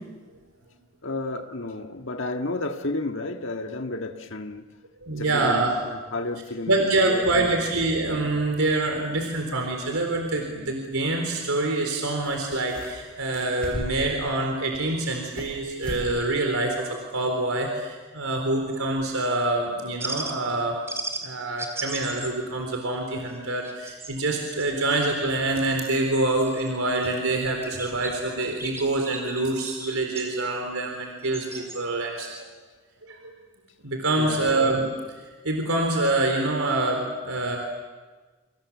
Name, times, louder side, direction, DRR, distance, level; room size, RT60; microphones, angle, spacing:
voice 1, 1.0-4.6 5.2-6.8 7.1-7.7 34.2-34.5, left 2 dB, 60° left, 1.7 m, -32 dB
voice 2, 5.0-5.7 6.7-20.8 21.2-32.3 33.0-33.3 33.8-34.8 35.4-37.6, right 2 dB, 75° right, 3.9 m, -26 dB
sound 1, 11.9-12.0 12.2-13.0 13.3-14.1 14.6-15.5 15.8-16.1 16.4-16.5 17.0-17.1, equal, 5° left, 6.7 m, -36 dB
sound 2, 18.7-18.9 20.0-20.3 20.9-21.3 21.6-22.4 22.7-23.0 23.4-24.7 25.4-27.1 27.4-28.1 28.4-30.3 31.2-31.8 32.2-32.3, right 3 dB, 10° right, 3.5 m, -36 dB
29.0 x 26.5 x 7.3 m
head